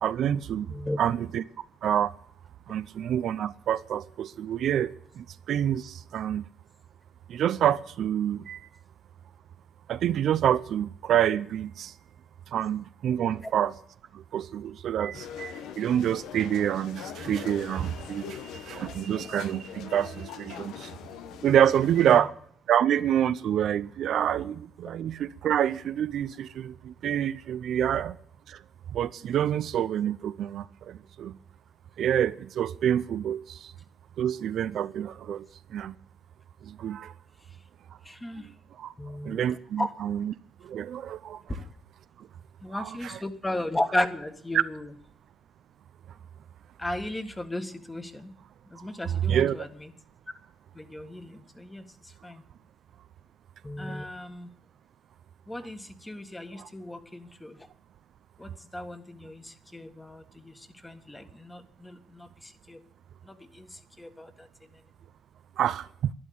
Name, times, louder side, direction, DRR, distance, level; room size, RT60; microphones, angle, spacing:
voice 1, 0.0-1.4 1.8-2.1 2.7-6.5 7.3-8.6 9.9-11.9 12.5-13.7 14.1-20.9 21.4-22.3 22.7-28.2 28.5-28.6 28.9-31.3 32.0-33.7 34.2-35.5 35.7-35.9 36.7-37.1 38.8-38.9 39.2-40.3 40.6-41.4 42.7-43.2 44.5-44.6 49.3-49.6 53.9-54.0 56.6-56.7 65.6-65.9, right 10 dB, 70° right, 0.5 m, -27 dB
sound 1, 15.1-22.2, left 9 dB, 90° left, 1.0 m, -42 dB
voice 2, 38.0-38.5 39.0-39.4 39.8-39.9 42.6-44.9 46.8-48.3 48.7-49.9 50.7-52.4 53.6-54.5 55.5-57.7 58.4-62.8 63.2-64.5, left 1 dB, 15° left, 1.7 m, -35 dB
12.0 x 11.0 x 8.7 m
cardioid pair, 90°, 0 cm